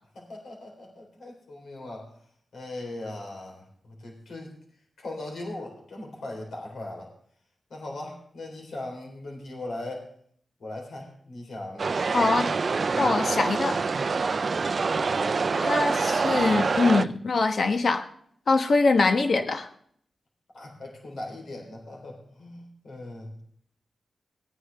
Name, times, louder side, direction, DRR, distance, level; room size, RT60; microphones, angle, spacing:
voice 1, 0.1-2.1 2.5-4.5 5.0-7.1 7.7-10.1 10.6-12.5 12.9-13.1 20.5-23.3, left 2 dB, 80° left, 0 dB, 3.9 m, -39 dB
sound 1, 11.8-17.0, right 4 dB, 55° right, 0.4 m, -26 dB
voice 2, 12.1-12.5 13.0-13.8 15.5-18.0 18.5-19.7, left 3 dB, 60° left, 7 dB, 1.2 m, -23 dB
17.5 x 9.9 x 3.5 m, 0.64 s
cardioid pair, 80°, 0 cm